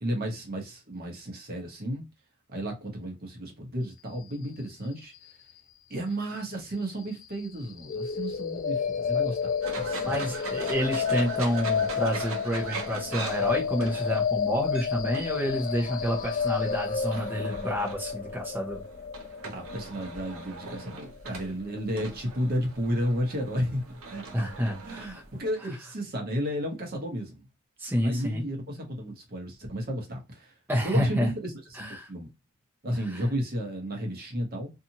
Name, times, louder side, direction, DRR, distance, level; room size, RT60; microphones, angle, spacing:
voice 1, 0.0-2.0 2.5-5.1 5.9-10.4 19.5-23.8 24.1-24.5 24.8-27.4 28.0-30.5 30.8-32.3 32.8-34.7, equal, 45° right, 0.9 m, -33 dB
sound 1, 7.9-21.8, left 6 dB, 40° left, 0.3 m, -31 dB
sound 2, 9.6-25.5, right 4 dB, 70° right, 0.7 m, -41 dB
voice 2, 10.0-18.8 24.3-25.2 27.8-28.4 30.7-31.3 31.7-32.1 33.1-33.2, equal, 10° right, 0.7 m, -29 dB
2.7 x 2.4 x 2.8 m
head